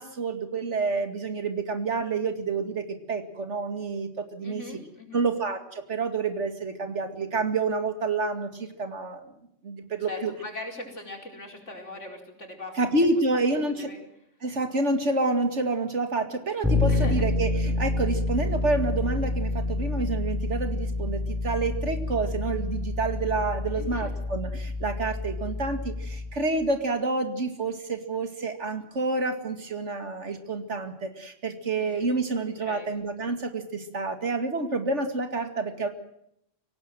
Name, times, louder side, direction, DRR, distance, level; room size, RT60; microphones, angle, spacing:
voice 1, 0.0-4.6 5.1-9.3 9.6-10.3 12.8-13.9 14.4-35.9, right 3 dB, 70° right, 7 dB, 2.6 m, -28 dB
voice 2, 4.4-5.3 10.1-12.8 13.4-14.0 16.9-17.3 23.7-24.1 31.7-32.1 32.4-32.9, left 2 dB, 75° left, 2 dB, 5.0 m, -40 dB
Bass guitar, 16.6-26.5, left 2 dB, ahead, 4.3 m, -28 dB
24.0 x 17.5 x 7.7 m, 0.76 s
omnidirectional pair, 1.3 m